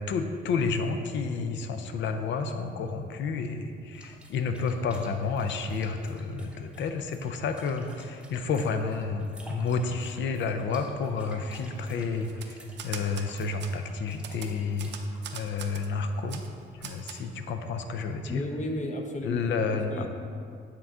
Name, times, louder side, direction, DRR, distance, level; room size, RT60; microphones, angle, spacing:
voice 1, 0.0-14.9 15.3-16.4 16.8-18.4 19.2-20.1, left 4 dB, 70° left, 7 dB, 0.5 m, -30 dB
sound 1, 3.9-17.5, right 1 dB, 5° right, 0.8 m, -53 dB
Typewriter, 12.3-13.3 13.6-13.7 14.2-15.9 16.3-16.5 16.8-17.2, right 8 dB, 65° right, 0.5 m, -41 dB
voice 2, 18.3-20.1, left 1 dB, 35° left, 3 dB, 0.8 m, -34 dB
8.6 x 3.8 x 3.5 m, 2.3 s
cardioid pair, 90°, 20 cm